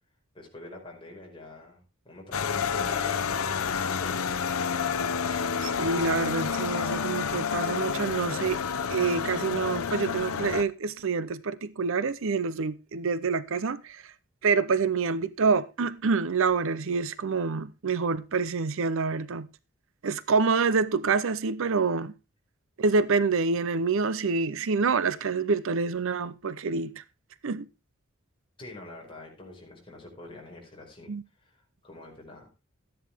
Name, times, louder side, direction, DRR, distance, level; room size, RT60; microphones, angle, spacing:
voice 1, 0.3-4.3 28.6-32.5, left 2 dB, 25° left, 4.9 m, -46 dB
sound 1, 2.3-10.6, left 6 dB, 85° left, 0.8 m, -29 dB
voice 2, 5.3-8.6 8.9-14.1 14.4-19.5 20.0-22.1 22.8-27.0 27.4-27.7 31.1-31.2, right 4 dB, 65° right, 0.6 m, -27 dB
13.5 x 10.0 x 3.5 m
head